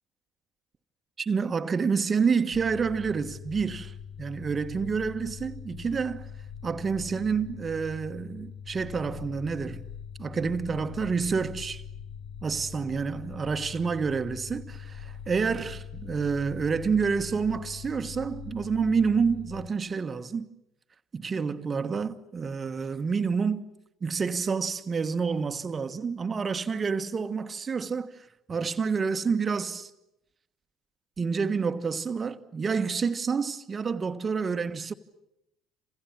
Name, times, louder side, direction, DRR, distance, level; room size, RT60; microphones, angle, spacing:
voice 1, 1.2-6.3 6.6-9.8 10.2-11.8 12.4-20.5 21.1-23.6 24.0-29.9 31.2-34.9, right 5 dB, 35° right, 1.4 m, -28 dB
sound 1, 2.5-19.7, left 7 dB, 60° left, 1.2 m, -42 dB
28.5 x 27.5 x 7.4 m
hypercardioid pair, 55°, 0 cm